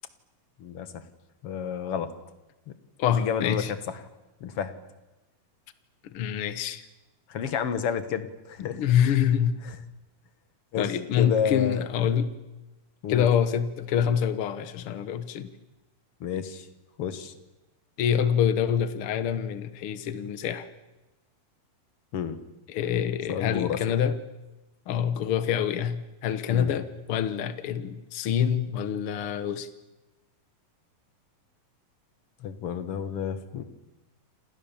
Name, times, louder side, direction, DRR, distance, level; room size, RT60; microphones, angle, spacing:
voice 1, 0.6-1.0 1.4-2.1 2.7-2.8 3.1-3.6 4.4-4.7 7.3-8.8 9.6-9.8 10.7-10.9 11.2-11.9 13.0-13.3 16.2-16.7 17.0-17.3 22.1-22.4 23.3-23.8 26.5-26.7 32.4-33.6, left 8 dB, 50° left, 12 dB, 1.9 m, -30 dB
voice 2, 3.0-3.7 6.1-6.8 8.6-9.6 10.8-12.3 13.1-15.5 18.0-20.7 22.7-24.2 24.9-29.7, left 8 dB, 85° left, 12 dB, 1.2 m, -26 dB
29.0 x 28.0 x 7.2 m, 1.1 s
omnidirectional pair, 4.3 m